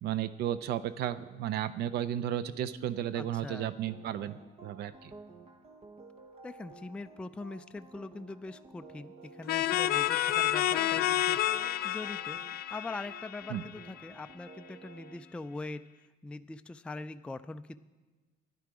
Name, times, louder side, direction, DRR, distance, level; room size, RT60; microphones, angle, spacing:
voice 1, 0.0-5.1 13.5-13.6, right 11 dB, 75° right, 14 dB, 0.5 m, -34 dB
voice 2, 3.1-3.7 6.4-11.4 11.8-12.4 12.7-15.8 16.2-17.8, left 3 dB, 5° left, 10 dB, 0.3 m, -42 dB
sound 1, 3.9-15.2, right 3 dB, 35° right, 1.2 m, -53 dB
sound 2, 9.5-14.1, left 13 dB, 65° left, 0.5 m, -30 dB
13.0 x 11.0 x 4.8 m, 1.3 s
cardioid pair, 110°, 17 cm